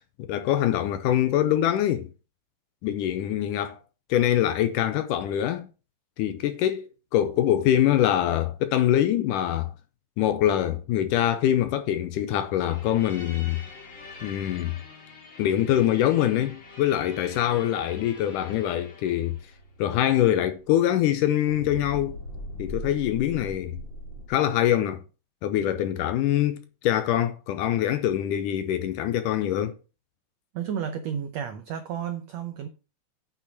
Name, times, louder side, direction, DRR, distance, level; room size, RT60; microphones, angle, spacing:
voice 1, 0.2-2.1 2.8-3.8 4.1-5.7 6.2-9.7 10.2-13.6 14.2-14.7 15.4-19.4 19.8-22.2 22.6-23.8 24.3-25.0 25.4-29.8, left 11 dB, 75° left, 2.0 m, -24 dB
sound 1, 12.7-21.2 21.5-24.3, left 1 dB, 35° left, 2.3 m, -42 dB
voice 2, 30.5-32.7, right 8 dB, 80° right, 1.5 m, -32 dB
8.6 x 5.9 x 5.3 m
omnidirectional pair, 4.1 m